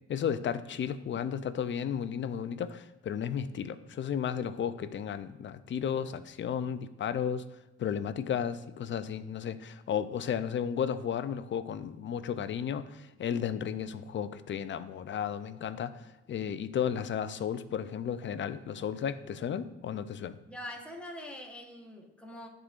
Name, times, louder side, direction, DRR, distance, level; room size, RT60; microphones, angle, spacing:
voice 1, 0.1-7.4 7.8-20.4, left 8 dB, 40° left, 12 dB, 0.4 m, -33 dB
voice 2, 20.5-22.5, left 1 dB, 5° left, 1 dB, 1.1 m, -43 dB
11.0 x 3.8 x 2.5 m, 1.1 s
cardioid pair, 90°, 30 cm